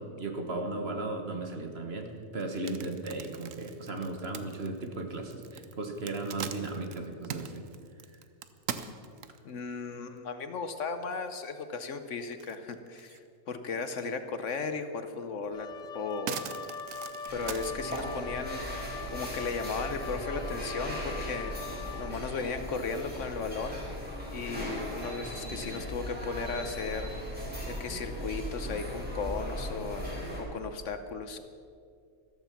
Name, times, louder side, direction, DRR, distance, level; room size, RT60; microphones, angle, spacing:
voice 1, 0.0-7.6, right 2 dB, 45° right, 4 dB, 1.6 m, -36 dB
sound 1, 2.4-9.6 10.2-10.3 10.7-10.8 11.1-12.0 12.3-13.3 13.6-13.7 15.1-15.2 15.6-18.1, right 8 dB, 70° right, 1.1 m, -42 dB
voice 2, 9.4-13.2 13.5-16.5 17.3-18.6 19.1-21.5 22.0-23.8 24.3-31.4, left 4 dB, 65° left, 9 dB, 1.2 m, -36 dB
Wind instrument woodwind instrument, 15.5-22.2, left 4 dB, 40° left, 0.6 m, -42 dB
sound 2, 17.3-30.4, equal, 5° right, 4.4 m, -38 dB
14.0 x 13.0 x 5.9 m, 2.3 s
omnidirectional pair, 1.5 m